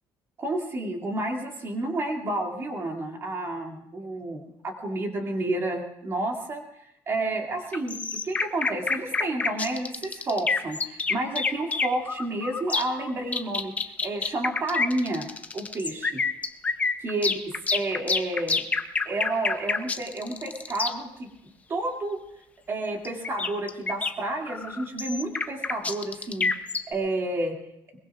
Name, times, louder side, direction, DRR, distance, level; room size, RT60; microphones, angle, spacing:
voice 1, 0.4-6.6 7.1-15.3 15.5-16.2 17.0-17.3 17.7-18.7 19.1-21.3 21.7-22.2 22.7-27.6, right 2 dB, 30° right, 1 dB, 2.3 m, -30 dB
sound 1, 7.7-20.9 23.0-26.9, left 4 dB, 15° left, 0.6 m, -27 dB
21.5 x 21.5 x 2.4 m, 0.82 s
cardioid pair, 175°, 9 cm